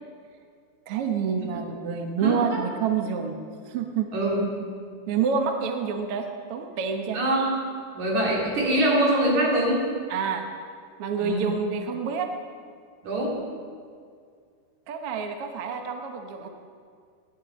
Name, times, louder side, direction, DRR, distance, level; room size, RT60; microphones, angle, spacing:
voice 1, 0.9-3.4 3.7-4.1 5.1-7.2 10.1-10.5 11.0-12.3 14.9-16.5, right 6 dB, 85° right, 5 dB, 1.2 m, -28 dB
voice 2, 4.1-4.5 7.1-7.6 7.9-9.9 11.2-11.5 13.0-13.4, right 1 dB, 55° right, -3 dB, 4.1 m, -23 dB
18.0 x 11.0 x 5.2 m, 2.2 s
omnidirectional pair, 4.2 m